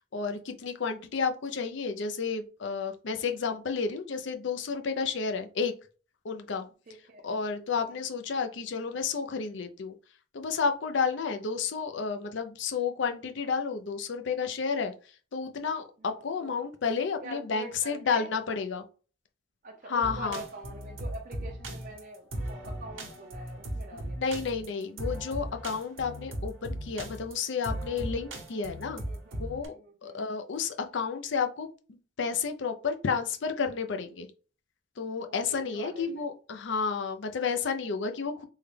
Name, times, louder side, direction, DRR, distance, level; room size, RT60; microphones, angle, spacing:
voice 1, 0.0-5.7 6.2-6.7 7.2-9.9 10.3-14.9 15.3-18.8 19.9-20.4 24.2-29.0 29.4-29.7 30.0-31.7 32.2-34.3 35.0-38.4, left 5 dB, 65° left, 0.5 m, -31 dB
voice 2, 6.9-7.3 7.7-8.0 16.0-16.5 17.2-18.6 19.6-24.5 29.0-29.4 29.7-30.3 35.3-36.2 37.4-37.6, right 2 dB, 45° right, 0.5 m, -45 dB
sound 1, 20.0-29.7, right 1 dB, 85° right, 1.0 m, -37 dB
3.6 x 2.2 x 3.3 m
head